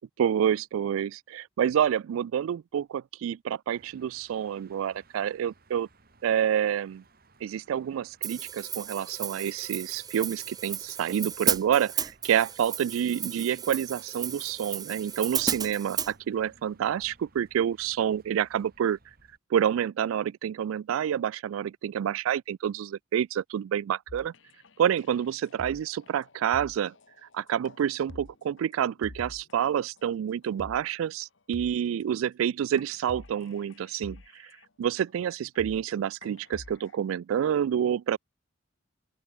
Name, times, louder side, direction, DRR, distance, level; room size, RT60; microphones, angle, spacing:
voice 1, 0.2-5.9 6.2-7.0 7.4-19.0 19.5-24.3 24.8-26.9 27.3-34.5 34.8-38.2, right 9 dB, 85° right, 0.3 m, -28 dB
sound 1, 3.7-19.4, right 3 dB, 45° right, 1.8 m, -61 dB
Hi-hat, 8.2-16.1, right 8 dB, 20° right, 0.6 m, -33 dB
sound 2, 24.1-29.6 30.0-30.1 30.4-30.9 31.2-31.3 31.5-32.0 32.5-32.6 32.8-34.7 35.1-35.2 35.4-35.9 36.2-37.0, left 2 dB, 70° left, 1.4 m, -48 dB
open air
head